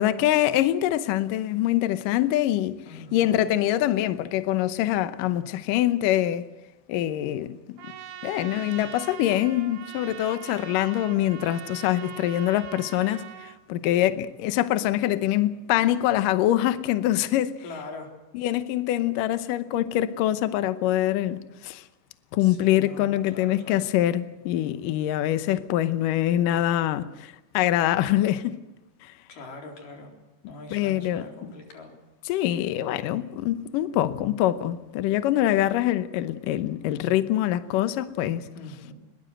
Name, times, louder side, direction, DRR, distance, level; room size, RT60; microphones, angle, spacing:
voice 1, 0.0-6.5 6.9-7.8 8.2-17.6 18.3-21.8 22.3-28.5 29.0-29.1 30.7-31.3 32.3-38.5, left 13 dB, 90° left, 1.9 m, -24 dB
voice 2, 2.9-3.5 17.6-18.1 22.4-23.9 29.3-30.1 30.5-31.9 38.5-38.9, left 2 dB, 50° left, 5.2 m, -42 dB
Trumpet, 7.8-13.6, right 9 dB, 65° right, 3.4 m, -42 dB
21.5 x 21.0 x 7.9 m
omnidirectional pair, 5.2 m